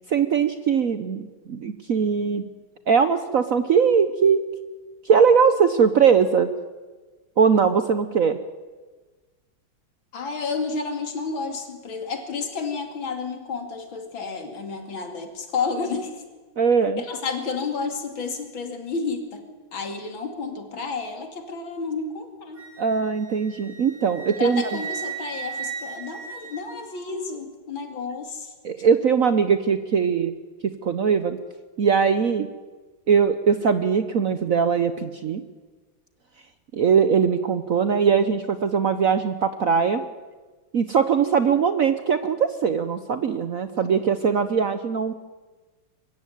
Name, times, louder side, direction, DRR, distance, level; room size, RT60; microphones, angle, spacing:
voice 1, 0.1-2.5 2.9-4.4 5.0-6.5 7.4-8.4 16.6-17.0 22.8-24.8 28.6-30.3 30.6-31.4 31.8-32.5 33.1-35.4 36.7-40.0 40.7-45.1, right 6 dB, 60° right, 10 dB, 0.9 m, -21 dB
voice 2, 10.1-16.2 17.0-19.4 19.7-22.6 24.4-28.5 43.8-44.1, left 4 dB, 70° left, 5 dB, 3.1 m, -31 dB
Wind instrument woodwind instrument, 22.6-27.1, right 6 dB, 80° right, 6.1 m, -36 dB
23.0 x 14.5 x 9.2 m, 1.3 s
omnidirectional pair, 2.3 m